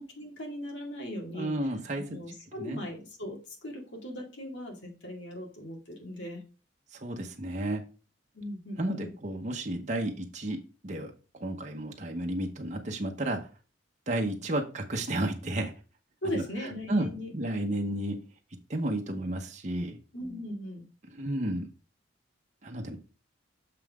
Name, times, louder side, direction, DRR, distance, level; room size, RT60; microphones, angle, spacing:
voice 1, 0.0-6.4 8.3-9.1 16.2-17.3 20.1-20.8, left 1 dB, 75° left, 1 dB, 2.3 m, -38 dB
voice 2, 1.3-2.2 2.6-2.8 6.9-7.8 8.8-11.1 11.4-13.5 14.1-15.7 16.3-16.4 16.9-17.1 17.3-18.2 18.7-20.0 21.1-21.7 22.6-23.0, right 1 dB, 40° right, 2 dB, 1.0 m, -32 dB
6.8 x 5.6 x 3.6 m, 0.35 s
head